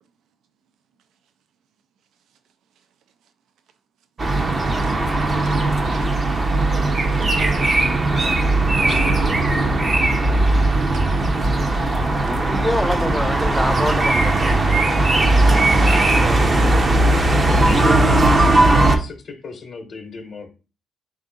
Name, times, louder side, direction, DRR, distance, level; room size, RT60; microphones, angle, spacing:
sound 1, 4.2-19.0, right 2 dB, 35° right, 0.6 m, -18 dB
voice 1, 4.5-5.1 5.4-7.7 8.6-11.1 12.3-12.4, right 6 dB, 75° right, 0.3 m, -38 dB
voice 2, 12.2-14.7 16.2-16.9, left 1 dB, 5° left, 0.3 m, -26 dB
voice 3, 17.5-18.4 18.7-20.6, left 4 dB, 50° left, 0.7 m, -33 dB
3.6 x 2.4 x 3.7 m
cardioid pair, 90°, 0 cm